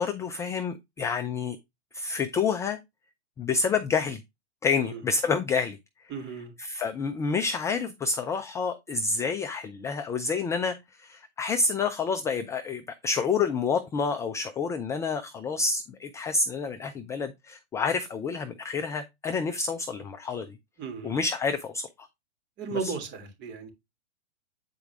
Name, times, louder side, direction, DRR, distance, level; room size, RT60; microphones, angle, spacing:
voice 1, 0.0-1.6 1.9-2.8 3.4-4.2 4.6-5.8 6.6-20.6 21.0-21.9 22.7-22.9, left 5 dB, 10° left, 0.4 m, -28 dB
voice 2, 6.1-6.5 20.8-21.2 22.6-23.7, right 5 dB, 30° right, 3.1 m, -35 dB
9.1 x 4.6 x 3.5 m
hypercardioid pair, 125°, 34 cm